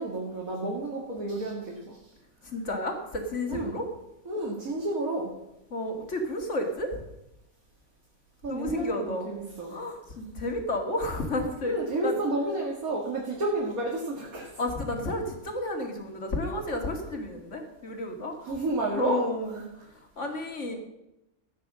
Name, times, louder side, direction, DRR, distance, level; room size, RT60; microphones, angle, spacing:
voice 1, 0.0-2.1 3.5-3.7 4.3-5.3 8.4-9.8 11.6-14.6 18.4-19.2 20.7-20.8, right 2 dB, 70° right, -2 dB, 2.7 m, -31 dB
voice 2, 2.4-3.9 5.7-7.0 8.5-9.3 9.7-11.8 12.0-12.2 14.6-18.4 18.9-20.7, left 1 dB, 55° left, 3 dB, 2.6 m, -32 dB
14.5 x 9.4 x 6.3 m, 0.89 s
omnidirectional pair, 1.5 m